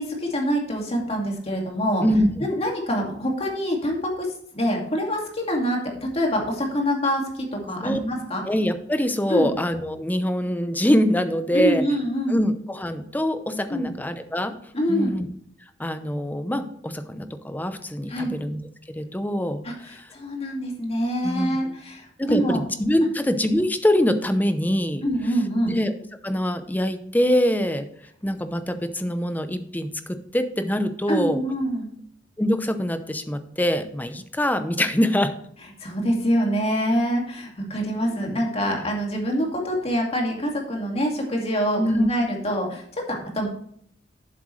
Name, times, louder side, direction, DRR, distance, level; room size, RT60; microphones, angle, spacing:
voice 1, 0.0-2.0 2.4-8.4 9.3-9.5 11.5-12.4 13.7-13.9 14.7-15.2 18.1-18.4 19.6-22.7 25.0-25.8 31.1-31.9 35.8-43.5, equal, 35° left, 0 dB, 2.2 m, -25 dB
voice 2, 2.0-2.5 7.8-8.0 8.4-11.8 12.3-14.5 14.9-15.3 15.8-18.6 18.9-20.1 21.2-21.7 22.2-25.0 25.6-25.9 26.2-27.9 28.2-31.4 32.4-35.3 41.8-42.1, equal, 10° left, 9 dB, 0.7 m, -24 dB
11.0 x 7.7 x 3.2 m, 0.65 s
head